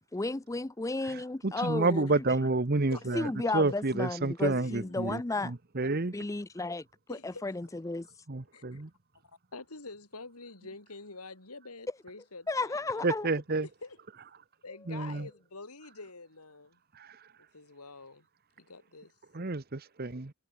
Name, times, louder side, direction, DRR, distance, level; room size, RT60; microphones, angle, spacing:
voice 1, 0.1-2.2 3.1-5.5 6.1-8.1 12.5-13.3, left 2 dB, 15° left, 0.5 m, -33 dB
voice 2, 1.4-3.3 3.5-5.2 5.4-6.1 8.3-8.9 13.0-13.7 14.9-15.3 17.0-17.2 19.3-20.3, right 3 dB, 45° right, 1.0 m, -29 dB
voice 3, 2.9-3.5 4.5-5.1 5.8-5.9 7.1-7.8 8.5-8.8 9.2-13.3 13.6-14.0 14.6-16.8 17.5-18.3 18.6-19.1, left 3 dB, 90° left, 3.8 m, -47 dB
head